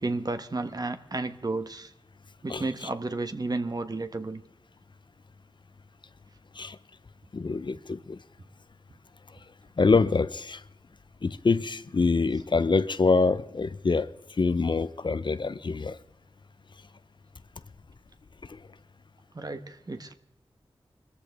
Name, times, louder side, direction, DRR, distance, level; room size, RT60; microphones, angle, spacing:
voice 1, 0.0-1.9 2.4-4.4 19.3-20.1, right 3 dB, 40° right, 1.1 m, -32 dB
voice 2, 7.3-8.2 9.8-10.6 11.2-16.0 18.4-18.6, left 4 dB, 55° left, 0.6 m, -25 dB
22.5 x 14.0 x 3.5 m
wide cardioid pair, 55°, 10 cm